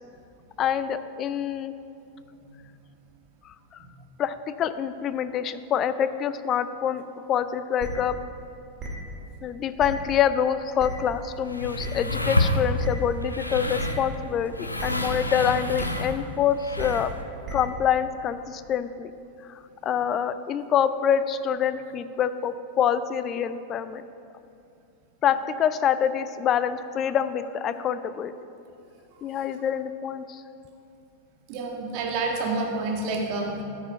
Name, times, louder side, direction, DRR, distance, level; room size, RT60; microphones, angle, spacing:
voice 1, 0.6-1.7 3.4-3.5 4.2-8.2 9.4-17.1 17.5-19.1 19.8-24.0 25.2-28.3 29.2-30.4, left 8 dB, 30° left, 13 dB, 0.4 m, -26 dB
sound 1, 7.8-7.9 8.8-8.9 9.8-9.9 10.8-10.9 11.8-11.9 12.8-12.9 13.8-13.9 14.8-14.9 15.8-15.9 16.8-16.9 17.4-17.5, right 4 dB, 30° right, 2.0 m, -35 dB
sound 2, 10.9-17.2, left 1 dB, 85° left, 0.6 m, -29 dB
voice 2, 31.5-33.6, right 3 dB, 45° right, 0 dB, 1.6 m, -28 dB
13.0 x 5.1 x 5.4 m, 2.6 s
figure-of-eight pair, 90°, 0 cm